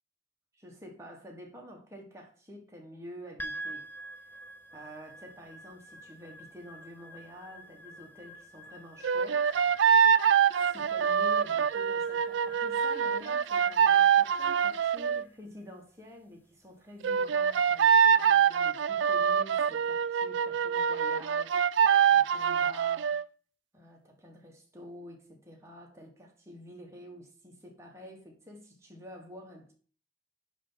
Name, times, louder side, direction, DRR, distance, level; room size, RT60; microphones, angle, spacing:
voice 1, 0.5-3.9 4.3-4.4 4.7-9.5 10.7-21.5 22.1-23.2 23.7-29.7, equal, 15° right, 1.4 m, -49 dB
sound 1, 3.4-17.8, right 1 dB, 10° left, 0.5 m, -48 dB
sound 2, 9.0-15.2 17.0-23.2, right 8 dB, 85° right, 0.4 m, -25 dB
9.8 x 3.5 x 5.6 m
head